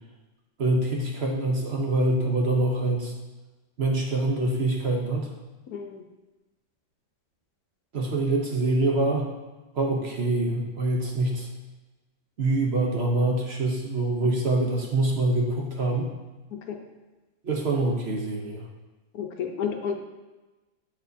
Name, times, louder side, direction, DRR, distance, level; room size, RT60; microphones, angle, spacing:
voice 1, 0.6-3.1 3.8-5.3 7.9-9.3 9.7-11.5 12.4-16.1 17.4-18.6, right 2 dB, 55° right, 0 dB, 0.7 m, -25 dB
voice 2, 5.7-6.0 16.5-16.8 19.1-20.0, left 7 dB, 65° left, 3 dB, 1.0 m, -31 dB
8.0 x 6.5 x 2.7 m, 1.2 s
omnidirectional pair, 2.1 m